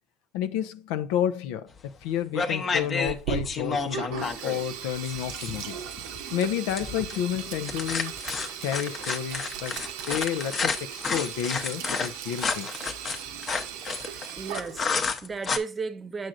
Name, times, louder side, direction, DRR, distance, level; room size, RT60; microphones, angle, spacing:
voice 1, 0.3-5.8 6.3-8.2 8.6-9.8 10.1-12.7, left 9 dB, 85° left, 0.5 m, -30 dB
sound 1, 1.8-2.0 2.3-15.6, left 4 dB, 35° left, 0.8 m, -31 dB
Sink (filling or washing), 3.0-15.1, right 9 dB, 90° right, 0.7 m, -38 dB
voice 2, 14.0-16.3, right 4 dB, 25° right, 0.8 m, -35 dB
7.7 x 6.1 x 2.5 m
supercardioid pair, 110°, 0 cm